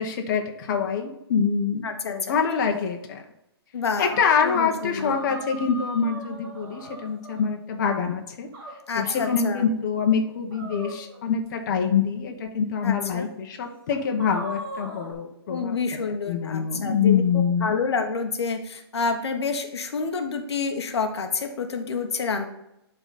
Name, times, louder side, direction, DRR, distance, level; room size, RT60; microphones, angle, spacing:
voice 1, 0.0-3.2 4.0-8.5 8.9-17.8, left 6 dB, 45° left, 3 dB, 1.1 m, -25 dB
voice 2, 1.8-2.3 3.7-4.1 4.4-5.2 8.9-9.7 12.8-13.2 15.5-22.4, left 5 dB, 75° left, 5 dB, 1.1 m, -28 dB
sound 1, 2.6-2.8 3.9-4.6 5.0-7.5 8.5-9.4 10.5-11.5 12.4-12.5 13.0-13.1 13.9-15.1, right 1 dB, 40° right, 2.4 m, -39 dB
11.0 x 4.0 x 4.1 m, 0.84 s
hypercardioid pair, 150°, 14 cm